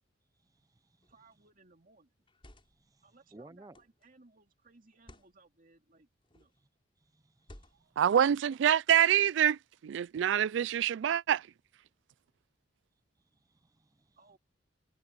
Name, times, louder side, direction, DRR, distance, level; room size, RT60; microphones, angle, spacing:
sound 1, 1.0-1.3 2.2-2.9 3.7-4.1 4.9-5.3 6.2-6.6 7.4-8.0, left 1 dB, 30° left, 5.7 m, -56 dB
voice 1, 1.1-2.1 3.0-6.5 14.2-14.4, right 3 dB, 45° right, 2.3 m, -62 dB
voice 2, 3.3-3.8 7.1-7.6 13.5-14.2, right 2 dB, 20° right, 0.5 m, -56 dB
voice 3, 8.0-11.5, right 9 dB, 70° right, 0.3 m, -26 dB
head